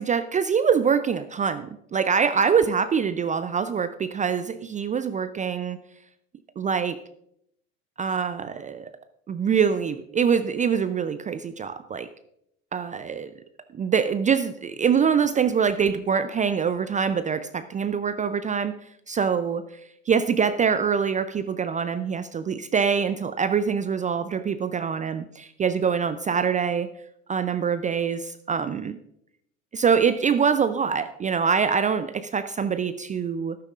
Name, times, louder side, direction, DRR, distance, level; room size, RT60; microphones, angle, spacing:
voice 1, 0.0-5.8 6.6-7.0 8.0-8.9 9.3-12.1 12.7-13.3 13.7-18.7 19.1-19.6 20.1-26.9 27.3-29.0 29.7-33.6, right 6 dB, 20° right, 12 dB, 0.4 m, -24 dB
13.0 x 12.5 x 2.5 m, 0.75 s
figure-of-eight pair, 70°, 41 cm